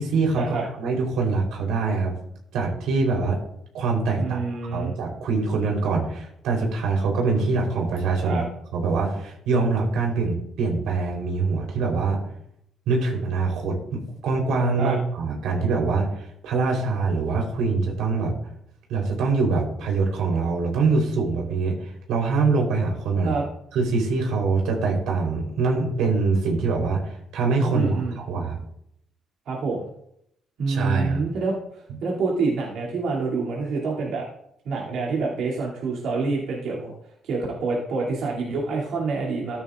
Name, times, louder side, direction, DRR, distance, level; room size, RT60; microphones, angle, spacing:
voice 1, 0.0-2.1 2.5-3.4 3.7-4.4 4.7-8.4 8.7-12.2 12.9-18.3 18.9-23.3 23.7-28.6 30.7-31.2, right 4 dB, 85° right, 0 dB, 3.8 m, -24 dB
voice 2, 4.2-4.9 8.3-8.4 14.8-15.0 23.2-23.4 27.7-28.2 29.5-29.9 30.6-34.3 34.6-36.9 37.2-39.6, right 4 dB, 70° right, -5 dB, 2.7 m, -27 dB
14.0 x 10.5 x 2.5 m, 0.75 s
cardioid pair, 145°, 0 cm